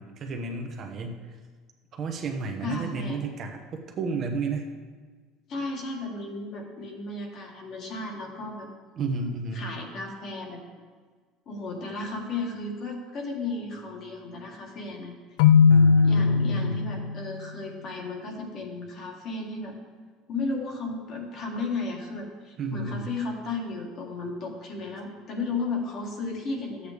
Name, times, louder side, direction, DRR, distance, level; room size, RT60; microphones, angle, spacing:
voice 1, 0.0-1.4 1.9-4.7 9.0-9.7 15.7-16.8 22.6-23.2, right 4 dB, 35° right, 4 dB, 1.0 m, -32 dB
voice 2, 2.6-3.2 5.5-8.7 9.5-10.6 11.5-15.1 16.0-19.8 20.3-26.9, left 3 dB, 40° left, 0 dB, 1.8 m, -34 dB
Keyboard (musical), 15.4-17.3, left 6 dB, 80° left, 0.3 m, -19 dB
13.5 x 8.1 x 3.5 m, 1.5 s
cardioid pair, 160°, 0 cm